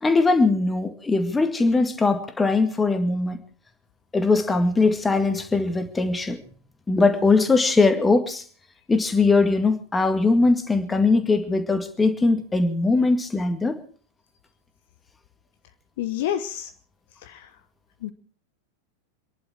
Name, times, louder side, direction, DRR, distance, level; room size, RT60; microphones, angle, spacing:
voice 1, 0.0-3.4 4.1-6.4 6.9-8.4 8.9-13.8, left 3 dB, 10° left, 8 dB, 2.1 m, -21 dB
voice 2, 16.0-16.7 17.2-17.5 18.0-18.1, left 11 dB, 55° left, 10 dB, 1.0 m, -28 dB
27.0 x 11.0 x 4.6 m, 0.43 s
figure-of-eight pair, 90°, 0 cm